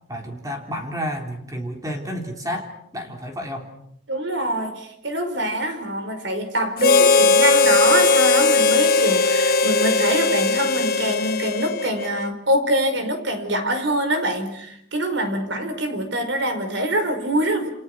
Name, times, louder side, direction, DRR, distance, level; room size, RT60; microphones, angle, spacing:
voice 1, 0.1-3.7, equal, 15° right, 3 dB, 3.7 m, -31 dB
voice 2, 4.1-17.7, right 1 dB, 65° right, 8 dB, 5.1 m, -24 dB
Harmonica, 6.8-12.3, left 4 dB, 45° left, 1.5 m, -18 dB
29.0 x 28.5 x 6.2 m, 0.70 s
head